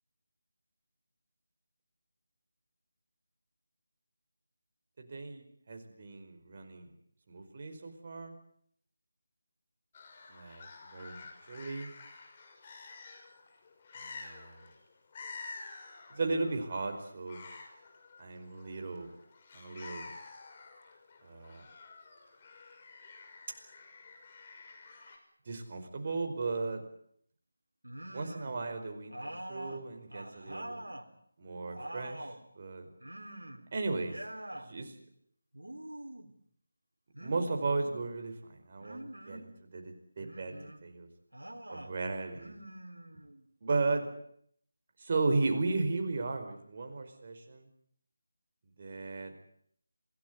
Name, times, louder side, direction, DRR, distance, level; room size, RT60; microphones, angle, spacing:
voice 1, 5.0-6.9 7.3-8.3 10.3-11.2 11.5-11.9 13.9-14.6 16.1-17.5 18.2-19.1 19.5-20.1 21.2-21.6 25.4-26.8 28.1-30.8 31.4-32.9 33.7-34.2 34.5-35.0 37.2-41.1 41.7-42.6 43.6-44.1 45.0-47.7 48.8-49.3, right 3 dB, 40° right, 5 dB, 5.0 m, -35 dB
sound 1, 9.9-25.2, left 4 dB, 30° left, 5.4 m, -50 dB
sound 2, 27.8-28.6 29.1-31.1 31.5-32.4 33.0-33.7 34.0-34.7 35.5-36.3 37.1-38.1 38.8-39.5 40.2-40.8 41.3-41.9 42.3-43.4, right 1 dB, 85° right, 3.9 m, -45 dB
27.0 x 18.0 x 9.5 m, 0.68 s
figure-of-eight pair, 160°, 0 cm